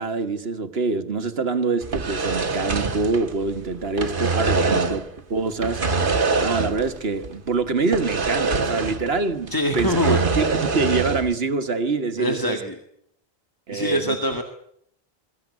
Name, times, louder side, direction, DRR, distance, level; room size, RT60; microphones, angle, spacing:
voice 1, 0.0-5.0 5.3-5.8 6.4-10.0 10.4-12.6 13.7-14.2, right 4 dB, 75° right, 1.7 m, -25 dB
sound 1, 1.8-3.6 3.8-5.1 5.6-7.0 7.2-7.3 7.9-9.2 9.5-11.3, right 4 dB, 55° right, 1.6 m, -24 dB
voice 2, 9.5-10.3 12.2-12.8 13.7-14.4, equal, 20° left, 1.8 m, -24 dB
23.5 x 15.0 x 9.5 m
omnidirectional pair, 1.1 m